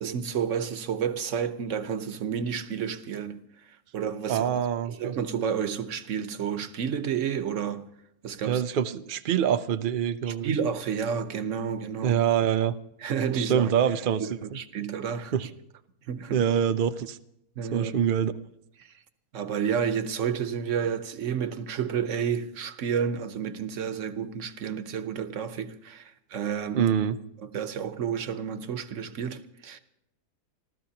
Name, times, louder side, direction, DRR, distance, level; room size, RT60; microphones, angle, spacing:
voice 1, 0.0-3.4 3.9-4.5 4.9-7.9 8.2-8.6 10.3-12.2 13.0-13.7 14.4-15.3 16.1-16.5 17.6-18.0 18.8-18.9 19.3-26.9 27.4-29.8, right 7 dB, 55° right, 1.1 m, -30 dB
voice 2, 4.3-5.1 8.5-10.5 12.0-12.7 13.4-14.6 15.3-15.5 16.3-17.2 17.7-18.3 26.7-27.2, right 9 dB, 80° right, 0.4 m, -25 dB
29.0 x 13.5 x 2.9 m
omnidirectional pair, 1.7 m